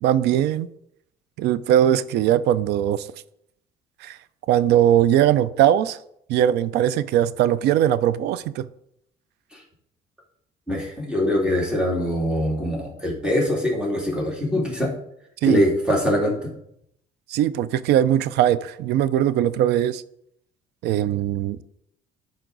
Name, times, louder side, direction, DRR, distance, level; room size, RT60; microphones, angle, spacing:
voice 1, 0.0-0.7 1.4-3.1 4.0-4.2 4.5-6.0 6.3-8.6 15.4-15.6 17.3-20.0 20.8-21.6, right 11 dB, 80° right, 17 dB, 0.5 m, -20 dB
voice 2, 10.7-14.9 15.4-16.5, left 1 dB, 5° right, -2 dB, 2.6 m, -23 dB
11.5 x 4.4 x 3.9 m, 0.74 s
cardioid pair, 110°, 17 cm